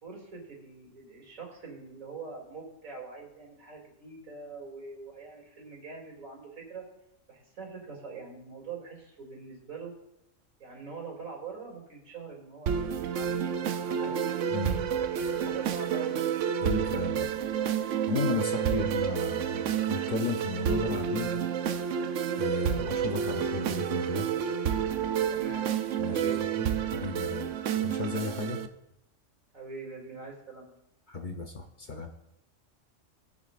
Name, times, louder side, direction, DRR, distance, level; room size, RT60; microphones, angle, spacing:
voice 1, 0.0-6.8 7.3-9.9 10.6-13.5 13.8-14.2 15.1-16.2 25.3-26.4 29.5-30.7, right 4 dB, 90° right, -2 dB, 3.2 m, -43 dB
sound 1, 12.7-28.7, right 8 dB, 70° right, 1.0 m, -30 dB
voice 2, 16.6-17.3 17.8-21.3 22.4-24.3 26.0-26.2 26.6-28.6 31.1-32.1, left 3 dB, 40° left, 4 dB, 0.8 m, -34 dB
20.0 x 7.1 x 2.5 m, 0.85 s
omnidirectional pair, 1.4 m